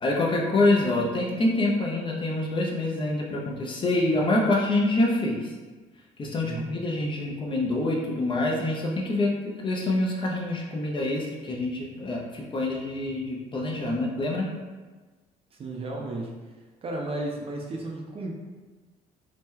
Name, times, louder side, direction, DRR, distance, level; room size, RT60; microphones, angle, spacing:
voice 1, 0.0-5.5 6.2-9.3 9.6-14.5, left 2 dB, 30° left, -2 dB, 0.5 m, -26 dB
voice 2, 6.4-6.8 15.5-16.4 16.8-18.3, right 2 dB, 35° right, 0 dB, 0.5 m, -34 dB
2.8 x 2.1 x 3.6 m, 1.3 s
cardioid pair, 110°, 17 cm